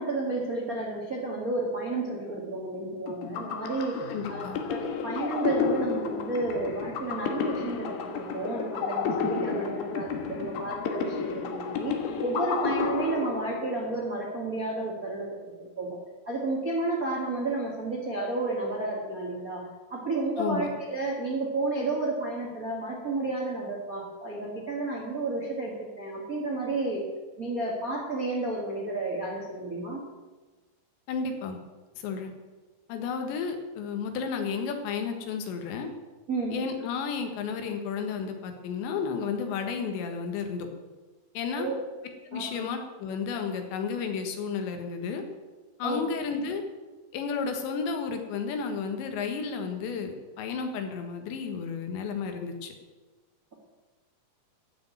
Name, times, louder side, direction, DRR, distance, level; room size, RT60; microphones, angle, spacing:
voice 1, 0.0-4.0 4.3-16.0 16.2-27.0 27.4-30.0 36.3-36.6 41.6-41.8 42.3-42.6 45.8-46.0, right 2 dB, 45° right, -1 dB, 1.1 m, -31 dB
sound 1, 3.1-13.9, left 6 dB, 70° left, 2.9 m, -32 dB
voice 2, 4.1-4.6 20.4-20.8 31.1-31.6 32.0-32.3 32.9-35.9 36.5-40.7 41.4-41.7 42.3-45.2 45.8-46.6 47.1-52.7, left 5 dB, 85° left, 5 dB, 3.7 m, -32 dB
14.0 x 6.2 x 9.1 m, 1.2 s
omnidirectional pair, 5.0 m